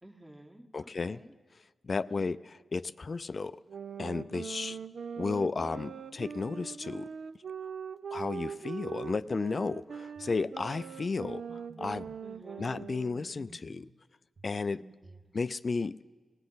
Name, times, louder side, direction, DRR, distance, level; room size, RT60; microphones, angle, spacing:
voice 1, 0.0-1.4 2.1-2.4 4.6-4.8 12.2-12.7 15.0-15.3, right 1 dB, 20° right, 1 dB, 1.6 m, -53 dB
voice 2, 0.7-1.2 1.8-3.6 4.0-4.8 5.2-7.1 8.1-12.1 12.6-13.9 14.4-14.8 15.3-16.0, left 4 dB, 55° left, 15 dB, 0.4 m, -33 dB
sound 1, 3.7-13.4, right 6 dB, 75° right, 0.4 m, -41 dB
sound 2, 10.2-10.4 10.8-11.0 11.5-12.2 13.2-13.9 14.4-15.3, right 2 dB, 55° right, 1.2 m, -54 dB
20.0 x 17.0 x 4.0 m, 1.4 s
cardioid pair, 45°, 0 cm